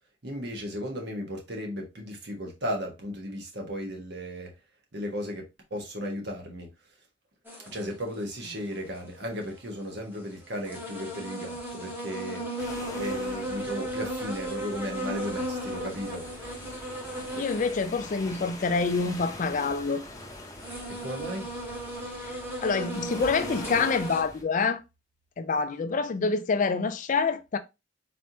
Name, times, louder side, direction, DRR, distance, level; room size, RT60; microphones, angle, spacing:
voice 1, 0.2-4.5 4.9-5.4 5.7-6.7 7.6-12.5 12.9-16.2 20.9-21.5, equal, 60° right, 1.2 m, -35 dB
sound 1, 7.4-7.9 9.5-9.6 10.1-10.2 10.6-18.0 18.3-18.4 19.0-19.9 20.5-24.2, right 1 dB, 10° right, 1.1 m, -35 dB
sound 2, 12.6-24.4, left 2 dB, 20° left, 0.7 m, -44 dB
voice 2, 17.4-20.0 22.2-24.8 25.4-27.6, left 4 dB, 45° left, 0.4 m, -27 dB
4.2 x 3.4 x 2.7 m
head